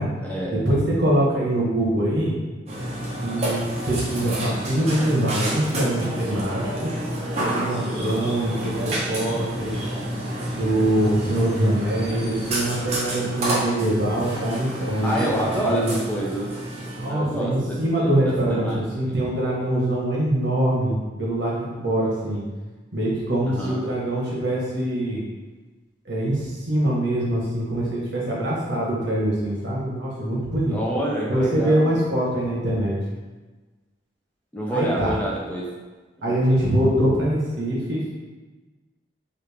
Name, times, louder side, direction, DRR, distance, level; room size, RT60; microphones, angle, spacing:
voice 1, 0.5-2.3 3.2-6.9 7.4-9.8 10.5-15.1 15.7-16.0 17.0-22.4 22.9-25.2 26.1-30.8 31.3-33.0 34.7-35.1 36.2-38.1, right 1 dB, 75° right, -5 dB, 1.0 m, -23 dB
Burping eructation, 2.7-17.1, right 1 dB, 40° right, 0.7 m, -29 dB
voice 2, 15.0-16.5 17.1-19.2 23.5-23.8 30.7-32.1 34.5-35.7 36.2-36.4, right 1 dB, 10° left, -4 dB, 0.4 m, -28 dB
3.2 x 2.4 x 3.3 m, 1.3 s
head